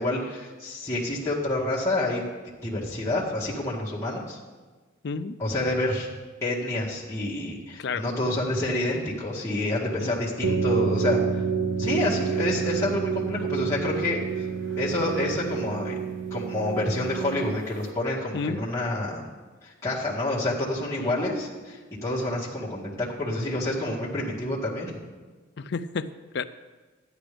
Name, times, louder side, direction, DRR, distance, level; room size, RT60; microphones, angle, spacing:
voice 1, 0.0-2.2 2.6-4.4 5.4-6.1 6.4-11.4 11.8-14.2 14.8-16.0 16.3-19.3 19.6-24.9, left 1 dB, 15° left, -8 dB, 2.0 m, -28 dB
voice 2, 5.0-5.4 7.8-8.0 10.0-10.2 18.3-18.6 21.0-21.2 25.6-26.1 26.3-26.4, left 4 dB, 55° left, 12 dB, 0.4 m, -30 dB
sound 1, 10.4-17.9, right 6 dB, 65° right, 0.9 m, -28 dB
13.5 x 10.5 x 3.4 m, 1.4 s
head